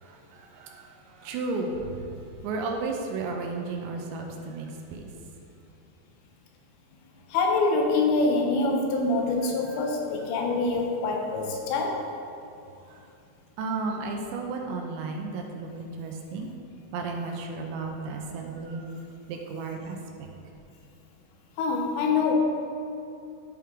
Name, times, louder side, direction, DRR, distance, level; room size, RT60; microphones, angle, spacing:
voice 1, 0.5-0.9 1.2-2.1 2.4-5.1 13.6-16.5 16.9-18.9 19.3-20.0, right 3 dB, 85° right, 2 dB, 2.9 m, -33 dB
voice 2, 7.3-12.0 21.6-22.3, left 3 dB, 80° left, 1 dB, 3.0 m, -25 dB
12.5 x 4.4 x 3.6 m, 2.7 s
omnidirectional pair, 5.1 m